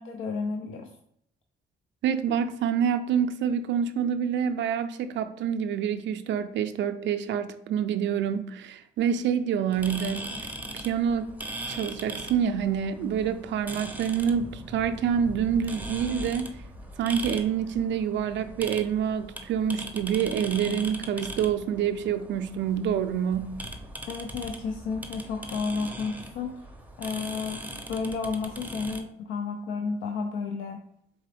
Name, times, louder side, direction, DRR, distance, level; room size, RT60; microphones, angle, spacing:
voice 1, 0.1-0.9 24.1-26.5 27.0-27.6 27.9-30.8, left 5 dB, 85° left, 0.5 m, -32 dB
voice 2, 2.0-10.3 10.7-11.3 11.7-16.6 17.0-23.6, right 8 dB, 70° right, 0.4 m, -27 dB
sound 1, 9.7-29.0, right 1 dB, 10° right, 0.6 m, -40 dB
3.8 x 3.7 x 3.3 m
cardioid pair, 90°, 20 cm